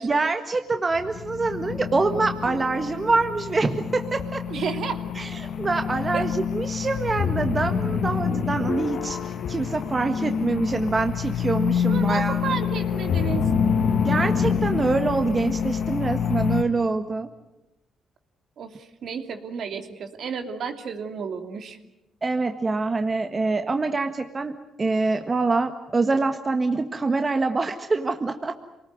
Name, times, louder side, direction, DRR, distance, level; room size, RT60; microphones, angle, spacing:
voice 1, 0.0-4.4 5.1-12.6 14.0-17.3 22.2-28.5, right 3 dB, 30° right, 6 dB, 1.6 m, -25 dB
sound 1, 0.9-16.6, left 7 dB, 60° left, 1.7 m, -27 dB
voice 2, 4.5-5.0 6.1-6.2 11.8-13.4 18.6-18.7 19.0-21.8, right 6 dB, 65° right, 6 dB, 2.9 m, -31 dB
28.0 x 19.5 x 9.6 m, 0.95 s
cardioid pair, 90°, 0 cm